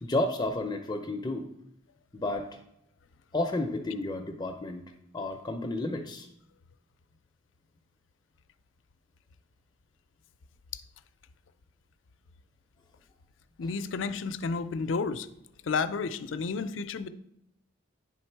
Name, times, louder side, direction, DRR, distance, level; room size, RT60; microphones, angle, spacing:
voice 1, 0.0-1.5 2.1-2.5 3.3-4.8 5.1-6.3 13.6-13.7, left 2 dB, 20° left, 0.5 m, -31 dB
voice 2, 13.6-15.3 15.7-17.1, left 4 dB, 80° left, 0.4 m, -31 dB
9.8 x 3.6 x 4.5 m
head